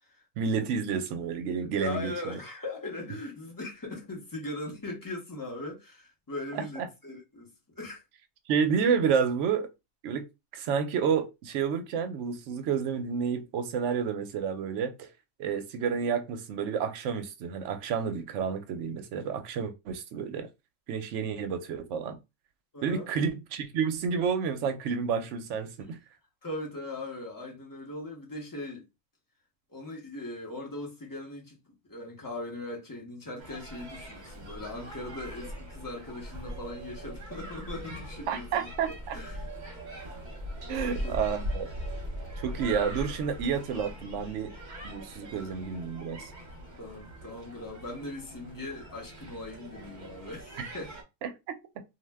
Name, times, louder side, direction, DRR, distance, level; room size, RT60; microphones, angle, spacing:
voice 1, 0.4-2.4 6.5-6.9 8.5-9.7 10.0-10.2 10.5-15.1 15.4-20.5 20.9-22.2 22.8-26.0 38.3-39.2 40.7-41.7 42.4-44.5 44.8-46.3 51.2-51.6, right 6 dB, 70° right, 0.8 m, -30 dB
voice 2, 1.8-8.0 22.7-23.1 26.4-28.9 29.7-31.6 31.8-39.5 40.7-41.1 46.8-51.0, left 2 dB, 20° left, 0.6 m, -40 dB
sound 1, 33.4-51.0, equal, 40° right, 0.8 m, -41 dB
2.5 x 2.1 x 3.3 m
omnidirectional pair, 1.4 m